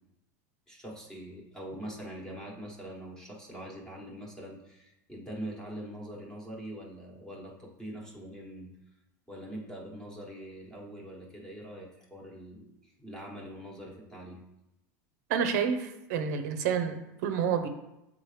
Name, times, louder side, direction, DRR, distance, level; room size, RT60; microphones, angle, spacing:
voice 1, 0.7-8.7 9.3-14.4, right 1 dB, 5° left, -3 dB, 1.1 m, -43 dB
voice 2, 15.3-17.7, right 7 dB, 70° right, 7 dB, 0.7 m, -29 dB
7.7 x 3.7 x 3.2 m, 0.90 s
supercardioid pair, 160°, 10 cm